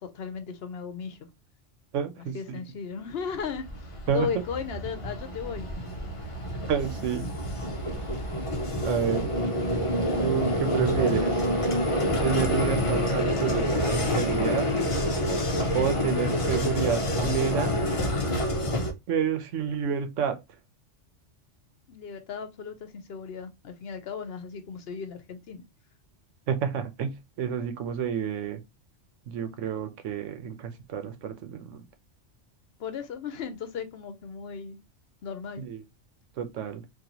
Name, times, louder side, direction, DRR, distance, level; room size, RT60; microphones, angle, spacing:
voice 1, 0.1-1.2 2.3-5.7 21.9-25.6 32.8-34.8 35.2-35.6, left 6 dB, 60° left, 0.8 m, -36 dB
voice 2, 1.9-2.6 4.1-4.3 6.7-7.3 8.8-9.3 10.2-11.4 12.2-14.7 15.7-17.7 19.1-20.4 26.5-28.6 29.3-31.8 35.6-35.8 36.4-36.8, right 7 dB, 90° right, 1.1 m, -29 dB
Vehicle, 3.3-18.9, left 1 dB, 35° left, 0.6 m, -27 dB
4.0 x 2.6 x 2.9 m
omnidirectional pair, 1.2 m